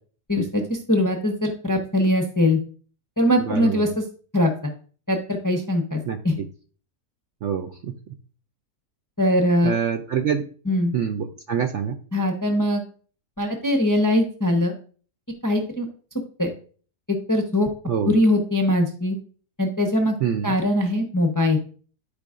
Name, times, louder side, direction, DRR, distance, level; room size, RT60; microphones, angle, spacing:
voice 1, 0.3-2.6 3.2-4.0 4.3-4.7 5.1-6.3 9.2-9.7 10.7-10.9 12.1-12.8 13.4-14.7 15.4-15.9 16.4-16.5 17.1-17.7 18.0-19.2 19.6-20.1 20.4-21.6, left 1 dB, 20° left, 3 dB, 0.5 m, -21 dB
voice 2, 3.4-3.9 6.1-6.5 7.4-7.9 9.6-10.4 10.9-12.0 17.9-18.1 20.2-20.5, right 8 dB, 65° right, 6 dB, 0.7 m, -26 dB
12.0 x 5.0 x 2.5 m, 0.43 s
omnidirectional pair, 1.7 m